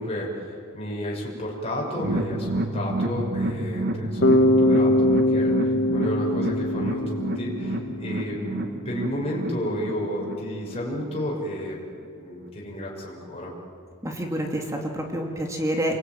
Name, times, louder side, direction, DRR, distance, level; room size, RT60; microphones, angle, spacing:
voice 1, 0.0-11.8 12.1-13.5, equal, 30° left, -3 dB, 6.3 m, -32 dB
sound 1, 1.9-11.2 11.5-11.6 12.0-12.1, right 1 dB, 55° right, 2.2 m, -30 dB
Bass guitar, 4.2-8.2, left 1 dB, 55° left, 1.9 m, -22 dB
voice 2, 14.0-16.0, right 1 dB, 15° right, 1 dB, 2.7 m, -28 dB
27.5 x 23.0 x 9.4 m, 2.5 s
head